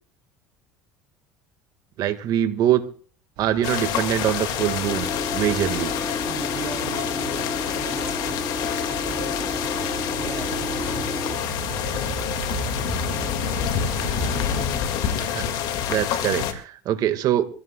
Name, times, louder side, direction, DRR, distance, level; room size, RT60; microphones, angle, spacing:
voice 1, 2.0-2.8 3.4-5.9 15.2-17.5, right 11 dB, 55° right, 9 dB, 1.6 m, -24 dB
sound 1, 3.4-14.6, right 6 dB, 75° right, 2.8 m, -37 dB
sound 2, 3.6-16.5, left 9 dB, 65° left, 1.9 m, -27 dB
sound 3, 4.8-11.3, left 2 dB, 15° left, 3.5 m, -32 dB
voice 2, 6.3-9.5 10.1-11.3, right 6 dB, 35° right, 2 dB, 3.7 m, -39 dB
25.0 x 15.5 x 2.2 m, 0.43 s
supercardioid pair, 95°, 8 cm